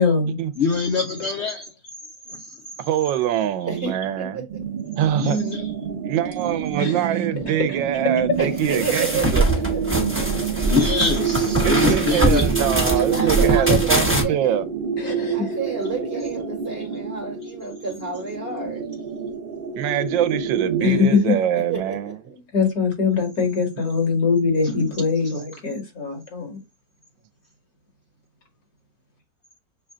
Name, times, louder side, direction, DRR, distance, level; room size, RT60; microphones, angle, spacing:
voice 1, 0.0-0.4 6.8-6.9 15.0-15.4 20.8-21.3 22.5-26.6, left 5 dB, 55° left, 2.2 m, -22 dB
voice 2, 0.6-1.7 2.3-2.6 5.2-6.0 10.7-12.4 24.6-24.7 25.2-25.3, left 5 dB, 75° left, 0.6 m, -24 dB
voice 3, 2.8-4.5 5.0-5.4 6.0-9.4 11.6-14.6 19.7-22.1, right 11 dB, 85° right, 1.3 m, -24 dB
voice 4, 3.7-4.6 8.4-10.7 12.9-14.4 15.3-18.9 21.7-22.4, right 4 dB, 35° right, 1.2 m, -30 dB
sound 1, 4.5-21.1, right 7 dB, 55° right, 0.6 m, -27 dB
sound 2, 8.6-14.2, right 1 dB, 10° right, 0.8 m, -22 dB
6.1 x 2.2 x 3.6 m
omnidirectional pair, 2.0 m